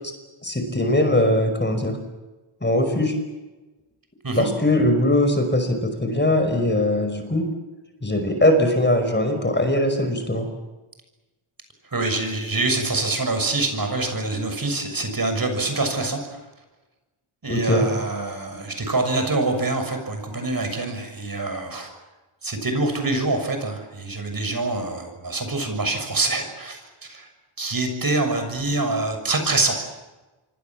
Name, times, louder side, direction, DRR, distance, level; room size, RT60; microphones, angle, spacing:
voice 1, 0.4-1.9 2.6-3.1 4.4-7.4 8.0-10.5 17.5-17.9, left 1 dB, 20° left, 7 dB, 5.2 m, -20 dB
voice 2, 11.9-16.4 17.4-21.9 22.4-26.8 27.1-27.3 27.6-29.8, right 2 dB, 45° right, 6 dB, 6.7 m, -25 dB
27.0 x 24.5 x 7.5 m, 1.1 s
wide cardioid pair, 80°, 50 cm